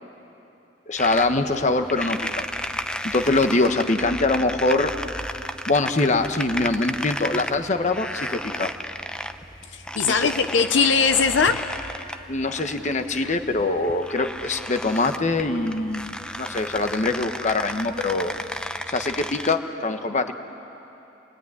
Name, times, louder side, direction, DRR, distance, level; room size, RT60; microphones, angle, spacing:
voice 1, 0.9-2.4 3.0-4.9 5.7-8.7 10.1-10.3 12.3-18.3 18.9-20.3, left 2 dB, 40° left, 7 dB, 1.2 m, -23 dB
sound 1, 1.0-19.6, left 1 dB, 5° left, 0.7 m, -34 dB
voice 2, 9.7-11.8, left 5 dB, 80° left, 8 dB, 0.8 m, -20 dB
27.0 x 20.5 x 9.7 m, 3.0 s
head